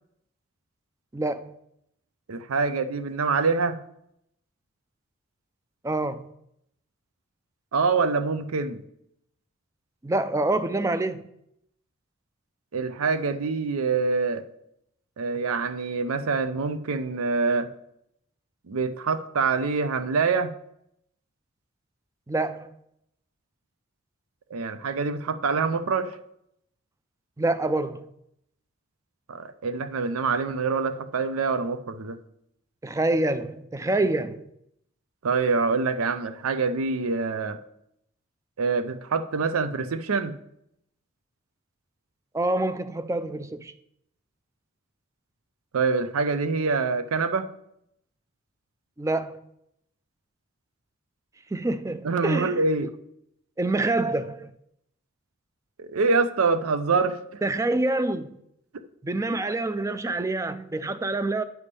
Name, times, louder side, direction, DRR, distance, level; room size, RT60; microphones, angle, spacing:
voice 1, 1.1-1.6 5.8-6.3 10.0-11.2 22.3-22.7 27.4-28.1 32.8-34.5 42.3-43.7 49.0-49.4 51.5-52.9 53.6-54.5 57.4-58.4 59.0-61.4, right 2 dB, 15° right, 0.3 m, -26 dB
voice 2, 2.3-3.8 7.7-8.8 12.7-14.5 15.2-17.7 18.7-20.5 24.5-26.2 29.3-32.2 35.2-37.6 38.6-40.3 45.7-47.5 52.0-52.9 55.8-57.2 58.7-58.8, right 4 dB, 85° right, 0.5 m, -25 dB
9.7 x 3.5 x 6.6 m
head